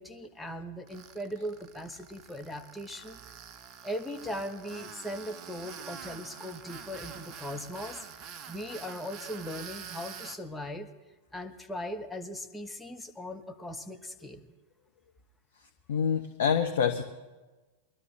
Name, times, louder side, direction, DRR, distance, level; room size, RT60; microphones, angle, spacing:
voice 1, 0.0-3.2 3.8-8.0 8.5-10.9 11.3-14.5, equal, 5° left, 3 dB, 1.1 m, -39 dB
Tools, 0.9-10.4, right 7 dB, 35° right, 0.8 m, -46 dB
voice 2, 15.9-17.0, left 7 dB, 60° left, 6 dB, 0.8 m, -26 dB
22.5 x 12.5 x 3.3 m, 1.2 s
figure-of-eight pair, 90°, 0 cm